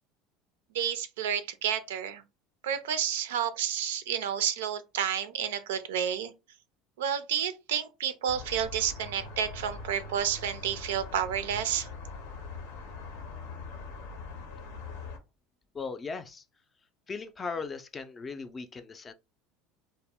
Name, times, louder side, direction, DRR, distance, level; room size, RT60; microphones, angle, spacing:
voice 1, 0.7-2.2 2.6-6.3 7.0-11.9, right 9 dB, 85° right, 0.4 m, -30 dB
sound 1, 8.3-15.2, left 3 dB, 80° left, 0.7 m, -42 dB
voice 2, 15.7-16.4 17.1-19.1, left 4 dB, 25° left, 0.4 m, -38 dB
2.1 x 2.1 x 3.4 m
supercardioid pair, 90°, 0 cm